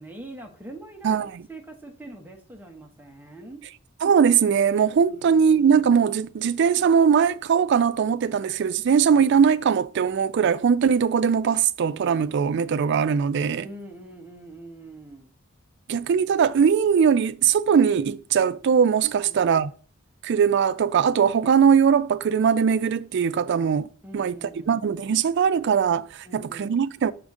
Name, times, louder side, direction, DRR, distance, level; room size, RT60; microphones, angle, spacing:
voice 1, 0.0-3.6 5.1-5.7 13.6-15.3 19.1-19.7 24.0-24.8 26.2-26.8, right 2 dB, 10° right, 1.0 m, -43 dB
voice 2, 1.0-1.4 4.0-13.7 15.9-19.7 20.2-23.9 24.1-24.4 24.7-27.1, right 7 dB, 55° right, 0.3 m, -20 dB
5.2 x 5.0 x 3.6 m
head